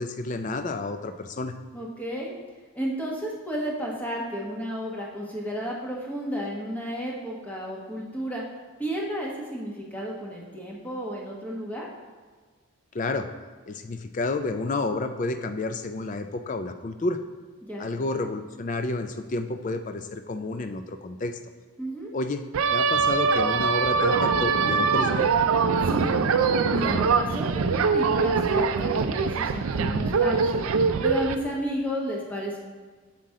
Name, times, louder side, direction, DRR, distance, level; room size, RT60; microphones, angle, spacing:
voice 1, 0.0-1.5 12.9-13.3 13.7-17.2 17.8-21.4 22.1-22.4 22.7-25.3, left 2 dB, 35° left, 8 dB, 0.4 m, -30 dB
voice 2, 1.7-2.3 2.7-8.4 8.8-11.9 17.6-17.8 21.8-22.1 25.8-26.0 26.7-30.6 31.0-32.6, equal, 10° left, -3 dB, 1.1 m, -32 dB
sound 1, 22.5-31.3, right 5 dB, 75° right, 0.4 m, -23 dB
7.4 x 5.8 x 3.7 m, 1.5 s
head